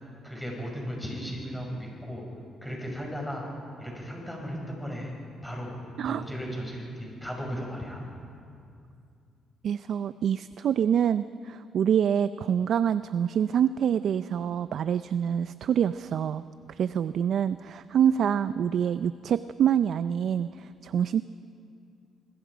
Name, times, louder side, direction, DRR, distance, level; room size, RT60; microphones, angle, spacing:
voice 1, 0.2-2.2 2.6-3.5 3.8-5.1 5.4-5.7 6.0-8.0, equal, ahead, -2 dB, 6.9 m, -36 dB
voice 2, 9.6-21.2, right 8 dB, 65° right, 13 dB, 0.4 m, -26 dB
27.0 x 21.0 x 5.1 m, 2.4 s
cardioid pair, 90°, 0 cm